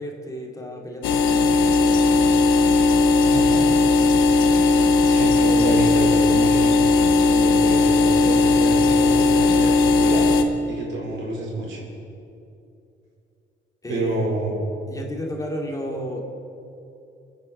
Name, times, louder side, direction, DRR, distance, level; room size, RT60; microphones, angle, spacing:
voice 1, 0.0-2.2 13.8-14.3 14.9-16.2, left 1 dB, 15° left, 0 dB, 2.3 m, -33 dB
sound 1, 1.0-10.4, left 3 dB, 90° left, 1.1 m, -17 dB
voice 2, 3.3-3.7 4.4-4.5 5.0-6.9 7.3-10.2 10.7-11.8 13.9-14.6, right 2 dB, 75° right, -3 dB, 4.6 m, -28 dB
26.5 x 10.0 x 4.3 m, 2.7 s
cardioid pair, 90°, 20 cm